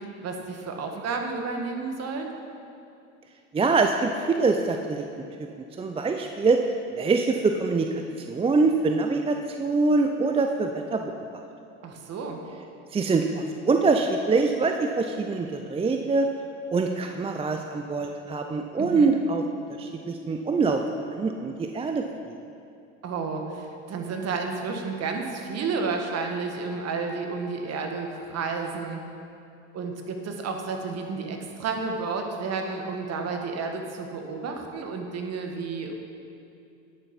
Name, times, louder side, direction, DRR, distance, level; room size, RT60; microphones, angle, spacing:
voice 1, 0.2-2.3 11.8-12.4 18.8-19.1 23.0-29.0 29.7-36.1, right 4 dB, 45° right, 3 dB, 1.4 m, -31 dB
voice 2, 3.5-5.0 5.8-6.6 7.0-8.0 8.3-11.1 12.9-16.3 16.7-19.4 19.8-20.8 21.1-22.4, right 3 dB, 15° right, 4 dB, 0.5 m, -24 dB
9.7 x 7.0 x 5.3 m, 2.6 s
hypercardioid pair, 80°, 36 cm